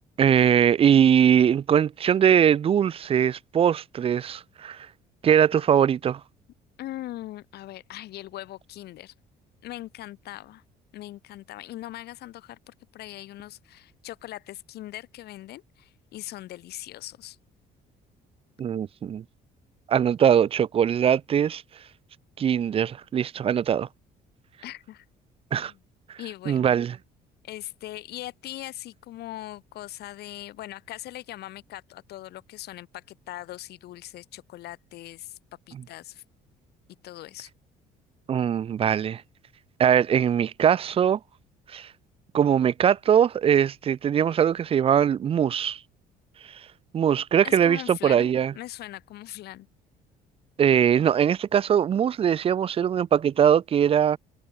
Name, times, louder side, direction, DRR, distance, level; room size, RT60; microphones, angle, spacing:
voice 1, 0.2-4.9 5.2-6.2 18.6-19.2 19.9-21.6 22.4-23.9 25.5-25.7 26.5-26.9 38.3-39.2 39.8-41.2 41.7-41.9 42.3-45.8 46.9-48.5 50.6-54.2, right 8 dB, 35° right, 0.4 m, -21 dB
voice 2, 6.8-9.1 9.6-10.6 10.9-17.4 24.6-25.0 25.5-25.8 26.2-26.8 27.4-35.4 35.7-36.2 37.0-37.5 47.4-49.7, left 15 dB, 75° left, 3.2 m, -40 dB
cardioid pair, 110°, 17 cm